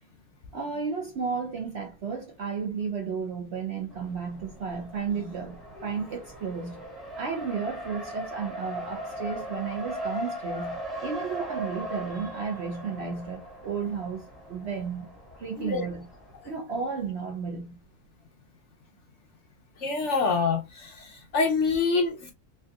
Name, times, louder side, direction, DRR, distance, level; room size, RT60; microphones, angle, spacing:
voice 1, 0.5-6.8 7.2-16.0 16.4-17.8, right 5 dB, 60° right, 0.7 m, -33 dB
Race car auto racing, 3.9-16.5, right 1 dB, ahead, 0.9 m, -39 dB
voice 2, 15.6-15.9 19.8-22.3, left 4 dB, 60° left, 0.9 m, -26 dB
3.4 x 2.7 x 2.3 m
omnidirectional pair, 1.6 m